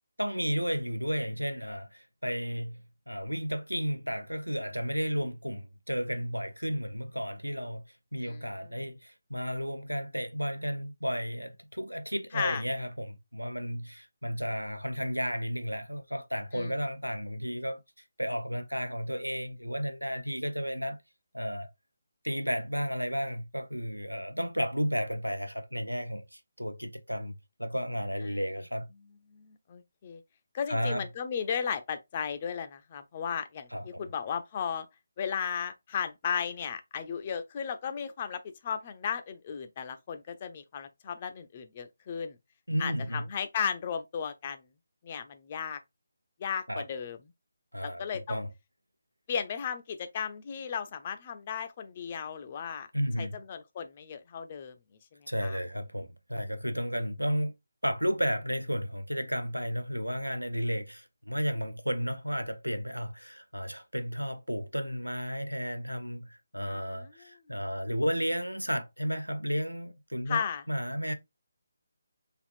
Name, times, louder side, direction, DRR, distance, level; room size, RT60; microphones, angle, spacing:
voice 1, 0.2-7.8 8.1-17.8 18.2-21.0 21.3-21.7 22.2-28.9 30.7-31.0 33.7-34.0 42.7-43.3 46.7-46.9 47.7-48.5 52.9-53.4 55.3-57.5 57.8-71.1, equal, 85° right, 0.5 m, -33 dB
voice 2, 29.3-30.2 30.5-34.9 35.2-42.4 42.8-44.6 45.0-45.8 46.4-47.2 47.8-48.4 49.3-52.9 53.2-54.7 55.4-55.6 66.7-67.1 70.3-70.6, left 7 dB, 30° left, 0.4 m, -35 dB
3.4 x 2.4 x 2.5 m
figure-of-eight pair, 150°, 0 cm